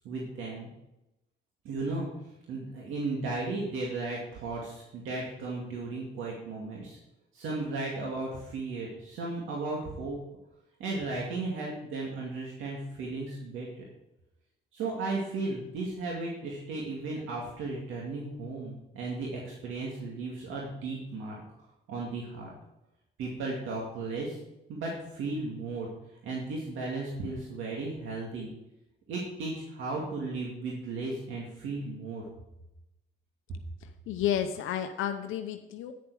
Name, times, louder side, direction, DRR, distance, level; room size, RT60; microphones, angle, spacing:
voice 1, 0.0-0.7 1.6-2.1 2.5-7.0 7.3-10.2 10.8-13.8 14.7-21.4 21.9-22.5 23.2-24.4 24.7-25.9 26.2-28.5 29.1-32.2, right 3 dB, 85° right, -3 dB, 2.3 m, -35 dB
voice 2, 34.1-35.9, left 10 dB, 85° left, 7 dB, 0.7 m, -31 dB
9.6 x 6.8 x 4.8 m, 0.89 s
cardioid pair, 90°, 20 cm